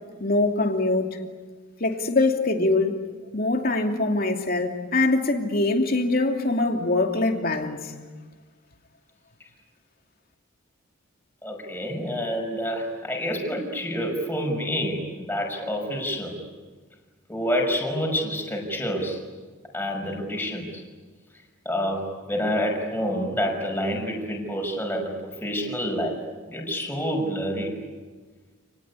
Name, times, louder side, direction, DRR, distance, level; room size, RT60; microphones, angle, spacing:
voice 1, 0.2-1.2 1.8-3.0 3.3-7.9, left 2 dB, 45° left, 2.8 m, -23 dB
voice 2, 11.4-16.3 17.3-19.2 19.7-20.8 21.6-26.2 26.5-27.7, equal, 10° left, 5.9 m, -28 dB
30.0 x 20.0 x 9.8 m
head